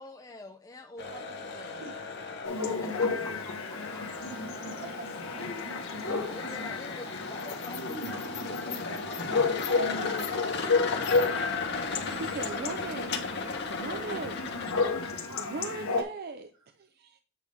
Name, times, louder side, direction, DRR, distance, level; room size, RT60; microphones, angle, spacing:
voice 1, 0.0-1.8 3.9-4.4 6.0-10.3, left 2 dB, 15° left, 0.5 m, -47 dB
sound 1, 1.0-15.3, left 4 dB, 55° left, 1.2 m, -37 dB
voice 2, 1.8-2.7 3.3-3.4 4.3-5.2 12.0-12.3 13.7-14.0 15.0-15.3, right 1 dB, 80° right, 1.8 m, -47 dB
Chatter / Bark / Livestock farm animals working animals, 2.4-16.0, left 4 dB, 90° left, 1.3 m, -32 dB
voice 3, 12.2-13.2 13.7-14.3 15.4-17.2, right 4 dB, 50° right, 0.6 m, -39 dB
8.3 x 3.5 x 5.2 m
head